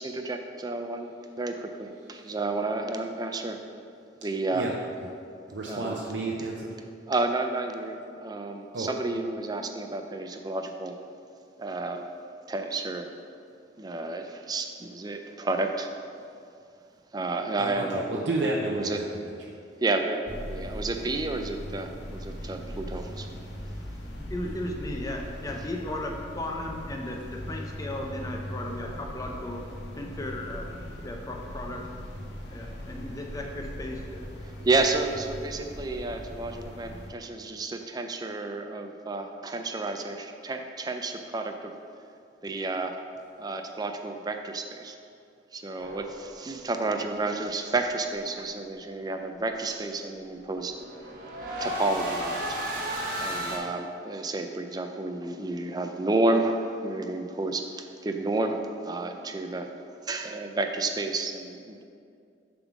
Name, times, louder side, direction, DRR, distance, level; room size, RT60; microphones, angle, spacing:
voice 1, 0.0-3.6 4.2-4.7 5.7-6.0 7.1-11.0 11.6-12.0 12.5-13.1 13.8-15.9 17.1-19.1 19.8-23.3 34.6-41.7 42.4-43.0 43.4-45.0 45.5-50.8 51.6-52.6 53.2-59.7 60.0-61.8, right 2 dB, 20° right, 5 dB, 0.4 m, -31 dB
voice 2, 4.5-5.1 5.5-6.7 8.7-8.9 17.6-19.6, right 2 dB, 80° right, -2 dB, 0.6 m, -32 dB
sound 1, 20.3-37.1, equal, 70° left, 0.9 m, -40 dB
voice 3, 24.1-29.6 30.0-30.7 31.0-31.8 32.5-34.3, left 1 dB, 20° left, 0 dB, 0.7 m, -36 dB
sound 2, 45.8-46.7 50.4-53.6, equal, 50° right, 1.2 m, -34 dB
7.0 x 3.7 x 6.0 m, 2.4 s
head